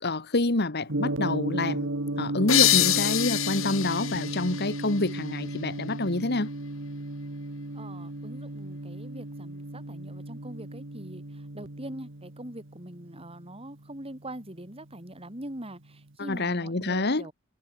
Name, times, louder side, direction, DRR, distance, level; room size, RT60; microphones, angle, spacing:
voice 1, 0.0-1.9 2.2-6.5 16.2-17.3, left 2 dB, 55° left, 1.7 m, -27 dB
Gong, 0.9-15.1, right 1 dB, 65° right, 2.0 m, -35 dB
sound 1, 2.5-5.9, left 13 dB, 70° left, 2.5 m, -26 dB
voice 2, 7.7-17.3, right 1 dB, 30° right, 6.4 m, -43 dB
head